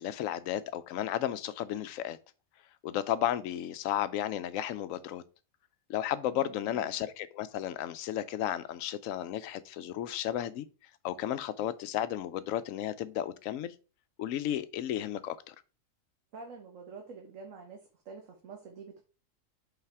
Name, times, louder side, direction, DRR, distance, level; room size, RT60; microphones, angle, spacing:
voice 1, 0.0-2.2 2.8-5.2 5.9-10.7 11.0-13.7 14.2-15.5, left 11 dB, 80° left, 1.0 m, -33 dB
voice 2, 6.3-6.9 16.3-17.8 18.0-19.0, right 4 dB, 70° right, 1.4 m, -47 dB
5.6 x 4.2 x 4.6 m
omnidirectional pair, 1.4 m